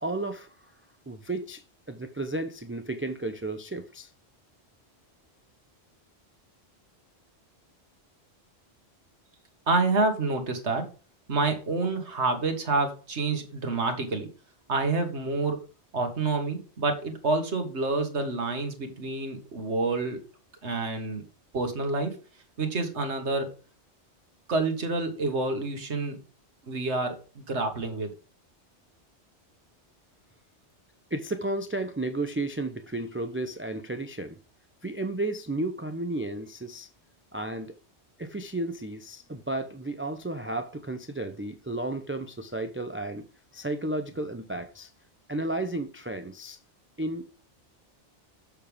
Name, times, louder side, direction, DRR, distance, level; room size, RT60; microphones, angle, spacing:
voice 1, 0.0-0.6 1.1-4.1 31.1-34.4 34.8-36.9 37.3-37.8 38.2-43.3 43.5-44.9 45.3-46.6 47.0-47.3, right 2 dB, 15° right, 0.5 m, -33 dB
voice 2, 9.7-10.9 11.3-14.3 14.7-15.6 15.9-20.2 20.6-21.2 21.5-22.2 22.6-23.5 24.5-26.2 26.6-28.1, right 3 dB, 90° right, 1.9 m, -28 dB
7.7 x 6.7 x 3.4 m
omnidirectional pair, 1.1 m